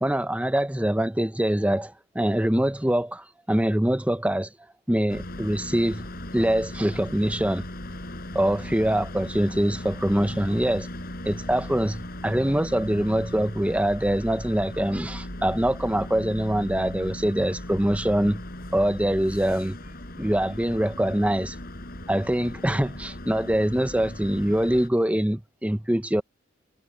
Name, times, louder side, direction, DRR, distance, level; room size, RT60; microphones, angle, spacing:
voice 1, 0.0-4.5 4.9-6.0 6.3-7.7 8.3-10.9 11.2-18.4 18.7-19.8 20.2-21.6 22.1-26.2, right 1 dB, 5° right, 0.7 m, -24 dB
sound 1, 5.1-24.9, left 1 dB, 50° left, 7.1 m, -38 dB
head